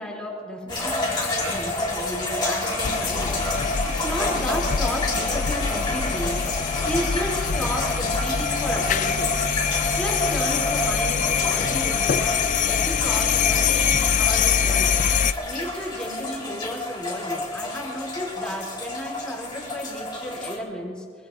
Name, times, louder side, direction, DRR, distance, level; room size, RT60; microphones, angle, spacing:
voice 1, 0.0-9.3 9.8-15.0 15.4-21.0, equal, 5° left, -3 dB, 3.3 m, -33 dB
sound 1, 0.7-20.6, left 2 dB, 25° left, 2.5 m, -29 dB
sound 2, 2.8-15.3, left 7 dB, 40° left, 0.4 m, -24 dB
23.5 x 22.0 x 2.7 m, 2.2 s
head